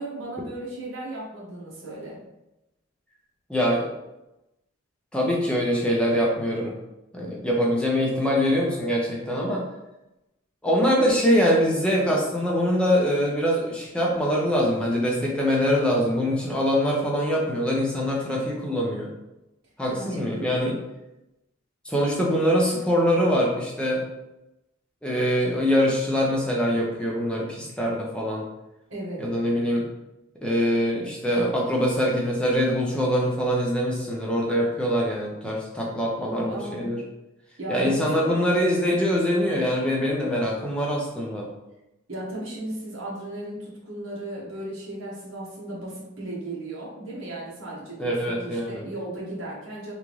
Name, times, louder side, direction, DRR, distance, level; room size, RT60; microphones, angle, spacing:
voice 1, 0.0-2.2 19.9-20.6 28.9-29.3 36.2-36.9 37.6-38.5 42.1-49.9, right 1 dB, 65° right, -5 dB, 1.2 m, -35 dB
voice 2, 3.5-3.9 5.1-6.7 7.1-9.6 10.6-19.1 19.8-20.8 21.8-24.0 25.0-28.4 29.2-29.8 30.4-37.0 37.7-41.5 48.0-48.9, equal, 5° left, -3 dB, 0.6 m, -23 dB
3.5 x 2.6 x 3.1 m, 0.94 s
head